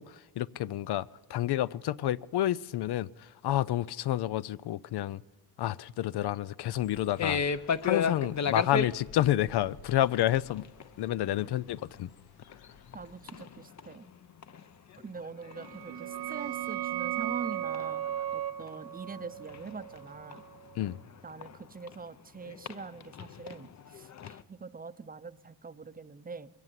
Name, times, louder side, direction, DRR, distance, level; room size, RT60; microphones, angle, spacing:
voice 1, 0.0-5.2 5.6-7.4 7.8-10.6 11.0-12.1 20.7-21.0, left 13 dB, 90° left, 0.6 m, -29 dB
sound 1, 6.6-13.5, left 6 dB, 70° left, 1.2 m, -56 dB
sound 2, 7.2-8.9 10.0-10.4 10.6-10.9 11.4-11.5 11.9-12.0 12.3-13.0 13.3-14.6 14.9-18.2 18.6-22.0 22.4-24.4, left 6 dB, 45° left, 0.7 m, -34 dB
voice 2, 12.9-14.1 15.0-18.0 18.3-20.4 21.2-26.5, right 4 dB, 25° right, 0.6 m, -43 dB
sound 3, 15.5-21.0, right 12 dB, 65° right, 0.9 m, -36 dB
22.0 x 17.5 x 7.5 m
wide cardioid pair, 135°, 38 cm